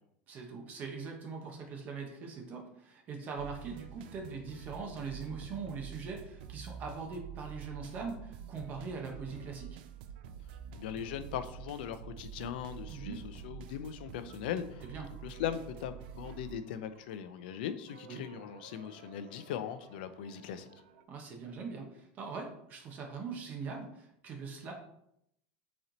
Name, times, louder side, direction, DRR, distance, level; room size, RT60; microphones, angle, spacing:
voice 1, 0.3-9.8 12.9-13.2 14.8-15.1 18.1-18.2 21.1-24.7, right 4 dB, 30° right, 2 dB, 0.7 m, -42 dB
sound 1, 3.4-21.0, right 8 dB, 75° right, 0.4 m, -48 dB
voice 2, 10.8-14.8 15.2-20.7, left 9 dB, 80° left, 11 dB, 0.4 m, -39 dB
4.1 x 3.0 x 3.8 m, 0.76 s
supercardioid pair, 155°, 5 cm